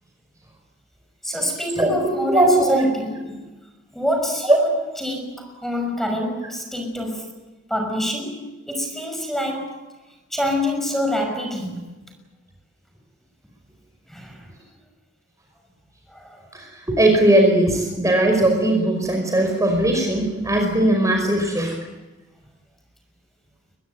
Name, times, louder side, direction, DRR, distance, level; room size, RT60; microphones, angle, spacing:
voice 1, 1.2-3.4 3.9-4.7 5.0-7.3 7.7-9.9 10.3-11.9 14.1-14.5 16.1-16.4, left 1 dB, ahead, 5.9 m, -27 dB
voice 2, 2.3-2.8 4.5-4.6 16.5-21.8, right 1 dB, 15° right, 5.1 m, -18 dB
23.0 x 20.5 x 9.3 m
head